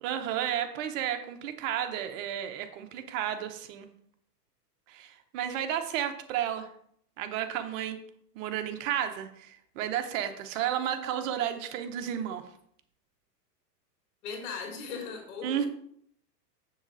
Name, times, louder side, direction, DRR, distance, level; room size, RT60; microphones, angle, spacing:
voice 1, 0.0-3.9 4.9-6.7 7.2-8.0 8.3-12.4 15.4-15.7, right 10 dB, 55° right, 7 dB, 1.1 m, -32 dB
voice 2, 14.2-15.7, left 5 dB, 70° left, 1 dB, 3.6 m, -38 dB
7.2 x 7.1 x 4.0 m, 0.67 s
supercardioid pair, 140°, 48 cm